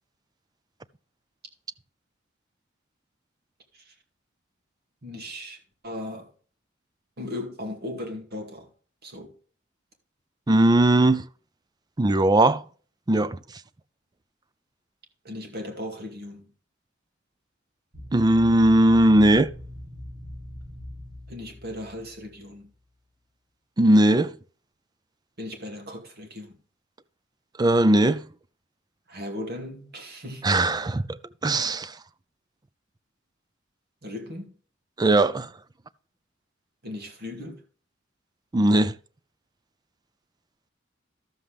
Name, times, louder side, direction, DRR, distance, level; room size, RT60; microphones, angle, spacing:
voice 1, 5.0-6.3 7.2-8.7 9.0-9.3 15.2-16.4 21.3-22.7 25.4-26.5 29.1-30.6 34.0-34.6 36.8-37.6, left 1 dB, 55° right, 2.4 m, -37 dB
voice 2, 10.5-11.3 12.0-12.6 13.1-13.4 18.1-19.5 23.8-24.4 27.6-28.2 30.4-32.0 35.0-35.5 38.5-39.0, right 1 dB, 20° right, 0.5 m, -19 dB
sound 1, 17.9-22.6, left 1 dB, 75° right, 3.0 m, -41 dB
12.5 x 7.6 x 3.4 m
head